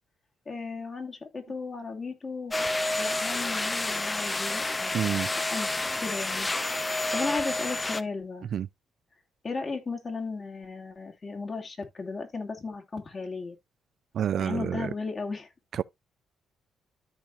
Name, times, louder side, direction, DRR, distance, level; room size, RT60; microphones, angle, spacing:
voice 1, 0.5-2.5 3.0-4.9 5.5-6.5 6.8-8.5 9.4-13.6 14.4-15.5, left 4 dB, 35° left, 2.6 m, -35 dB
sound 1, 2.5-8.0, left 2 dB, 20° left, 0.8 m, -29 dB
voice 2, 4.9-5.3 8.5-8.7 14.1-14.9, right 9 dB, 65° right, 0.4 m, -28 dB
13.5 x 4.6 x 2.5 m
cardioid pair, 90°, 0 cm